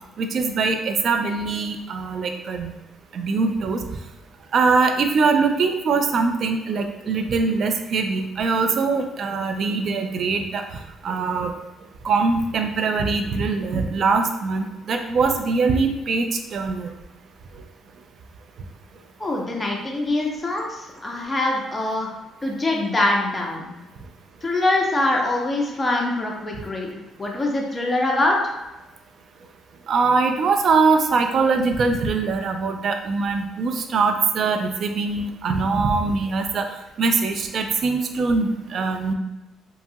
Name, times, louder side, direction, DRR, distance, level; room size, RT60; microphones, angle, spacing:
voice 1, 0.2-2.7 3.1-3.8 4.5-11.5 12.0-16.9 29.9-36.7 37.0-39.1, right 4 dB, 55° right, 5 dB, 0.3 m, -22 dB
voice 2, 19.2-22.1 22.4-23.7 24.4-28.4, left 2 dB, 20° left, -1 dB, 0.6 m, -24 dB
2.9 x 2.3 x 2.7 m, 1.0 s
cardioid pair, 100°, 0 cm